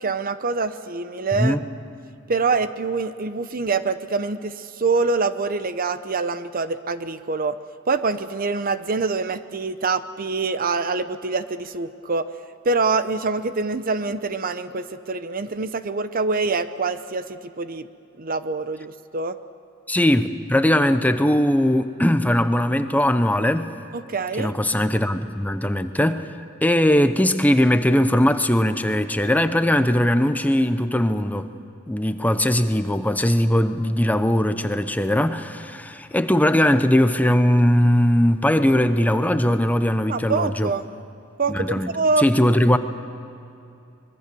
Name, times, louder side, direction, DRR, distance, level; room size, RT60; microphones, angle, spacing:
voice 1, 0.0-1.6 2.3-7.6 7.9-12.3 12.6-17.9 18.2-19.4 23.9-24.6 40.1-40.9 41.4-42.3, right 4 dB, 45° right, 12 dB, 0.8 m, -25 dB
voice 2, 19.9-23.7 24.4-26.3 26.6-31.5 31.9-40.7 41.5-42.8, left 1 dB, 10° left, 10 dB, 0.8 m, -20 dB
24.5 x 21.5 x 6.9 m, 2.7 s
head